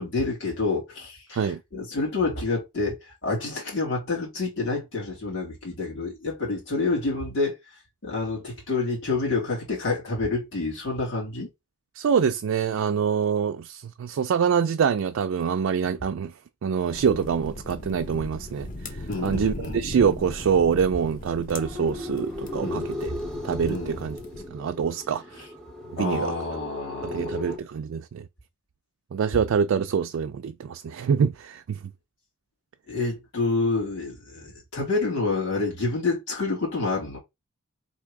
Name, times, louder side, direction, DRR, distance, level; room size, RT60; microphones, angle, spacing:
voice 1, 0.0-7.6 8.0-11.5 19.1-19.8 22.6-22.9 23.7-24.0 26.0-27.4 32.9-37.2, left 3 dB, 55° left, 2.1 m, -28 dB
voice 2, 11.9-16.3 16.6-23.1 23.4-24.2 24.5-25.5 25.9-26.4 27.0-28.3 29.1-31.8, right 6 dB, 65° right, 0.3 m, -25 dB
sound 1, 16.9-24.5, left 1 dB, 35° left, 0.7 m, -38 dB
sound 2, 21.6-27.6, left 1 dB, 5° left, 0.8 m, -36 dB
3.5 x 2.7 x 4.6 m
head